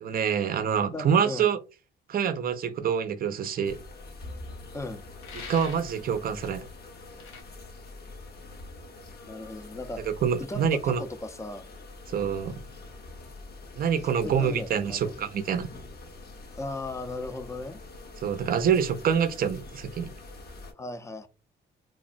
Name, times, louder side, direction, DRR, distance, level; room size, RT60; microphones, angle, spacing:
voice 1, 0.0-1.6 2.1-3.8 5.3-6.6 10.1-11.0 12.1-12.6 13.8-15.7 18.2-20.1, right 7 dB, 50° right, 0.5 m, -26 dB
voice 2, 0.9-1.5 4.7-5.0 9.3-10.0 10.5-11.7 14.2-15.2 16.6-17.8 20.7-21.3, left 2 dB, 15° left, 0.5 m, -37 dB
sound 1, 3.6-20.7, left 2 dB, 50° left, 0.8 m, -45 dB
sound 2, 5.2-6.0 7.2-7.4, left 5 dB, 85° left, 0.8 m, -43 dB
3.3 x 2.0 x 2.5 m
cardioid pair, 90°, 20 cm